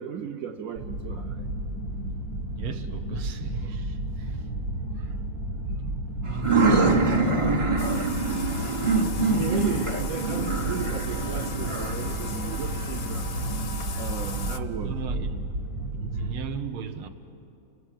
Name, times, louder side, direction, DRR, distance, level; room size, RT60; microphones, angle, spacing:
voice 1, 0.0-1.4 5.7-5.8 9.4-13.3 14.0-14.9, right 8 dB, 75° right, 0.7 m, -35 dB
sound 1, 0.8-16.4, right 1 dB, 60° right, 2.8 m, -32 dB
voice 2, 2.6-4.4 5.0-5.1 6.2-7.1 8.1-8.4 14.8-15.4 16.0-17.1, right 6 dB, 90° right, 1.9 m, -37 dB
sound 2, 6.2-13.8, right 3 dB, 40° right, 0.4 m, -25 dB
Bathtub (filling or washing), 7.8-14.6, left 5 dB, 60° left, 0.6 m, -39 dB
29.5 x 19.5 x 7.5 m
omnidirectional pair, 2.3 m